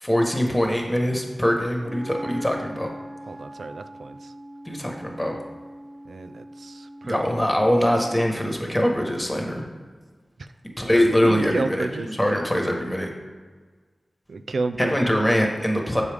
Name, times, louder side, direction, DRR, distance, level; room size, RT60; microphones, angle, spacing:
voice 1, 0.0-2.9 4.6-5.4 7.0-9.7 10.8-13.1 14.8-16.0, equal, 10° left, 1 dB, 1.3 m, -23 dB
Wind instrument woodwind instrument, 1.8-8.5, right 1 dB, 35° right, 0.7 m, -40 dB
voice 2, 3.3-4.3 6.0-7.2 11.2-12.1 14.3-15.3, right 3 dB, 80° right, 9 dB, 0.3 m, -31 dB
6.8 x 4.8 x 3.5 m, 1.4 s
cardioid pair, 45°, 0 cm